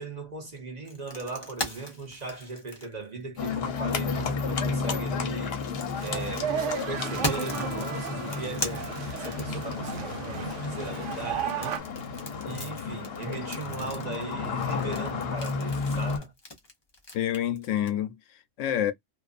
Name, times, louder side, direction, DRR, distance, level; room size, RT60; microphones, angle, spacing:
voice 1, 0.0-5.6 6.0-12.1 12.4-16.3, right 3 dB, 40° right, 0.9 m, -38 dB
sound 1, 0.8-3.8 5.2-10.0 11.4-17.9, left 1 dB, 25° left, 0.7 m, -38 dB
Livestock farm animals working animals, 3.4-16.2, left 5 dB, 60° left, 0.9 m, -32 dB
sound 2, 5.9-11.8, right 9 dB, 80° right, 0.9 m, -35 dB
voice 2, 17.1-18.9, left 11 dB, 85° left, 0.9 m, -28 dB
2.5 x 2.4 x 2.4 m
omnidirectional pair, 1.2 m